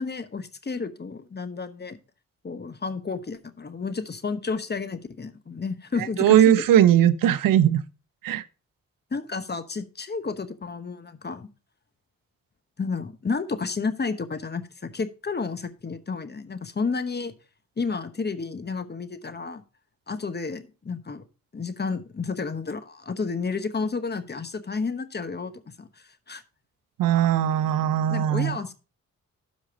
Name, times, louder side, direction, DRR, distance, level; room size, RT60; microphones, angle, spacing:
voice 1, 0.0-2.0 2.4-6.4 9.1-11.5 12.8-17.3 17.8-19.6 20.1-21.2 21.5-26.4 28.1-28.7, left 4 dB, 30° left, 1.1 m, -31 dB
voice 2, 6.2-7.8 8.2-8.4 27.0-28.6, right 10 dB, 80° right, 0.7 m, -19 dB
12.0 x 5.2 x 3.7 m
cardioid pair, 70°, 33 cm